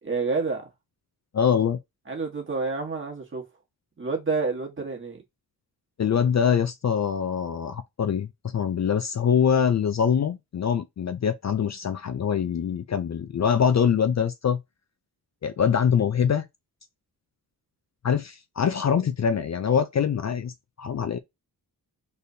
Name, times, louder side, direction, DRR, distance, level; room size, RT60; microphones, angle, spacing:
voice 1, 0.0-0.7 2.1-3.4 4.0-5.2, right 4 dB, 30° right, 1.5 m, -28 dB
voice 2, 1.3-1.8 6.0-14.6 15.4-16.5 18.0-20.5 20.8-21.2, left 7 dB, 45° left, 0.5 m, -24 dB
4.2 x 3.3 x 2.7 m
wide cardioid pair, 115°, 38 cm